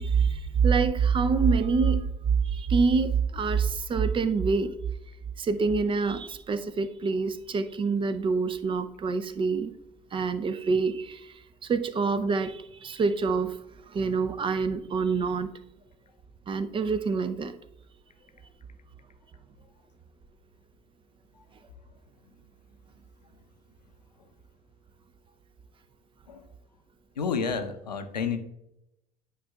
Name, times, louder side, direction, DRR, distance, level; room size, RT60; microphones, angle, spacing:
voice 1, 0.0-2.1 2.4-4.7 5.4-9.7 10.1-13.6 13.9-15.5 16.5-17.5, right 5 dB, 25° right, 0.6 m, -26 dB
voice 2, 27.2-28.4, left 5 dB, 85° left, 0.7 m, -30 dB
10.0 x 5.3 x 2.3 m
figure-of-eight pair, 65°, 21 cm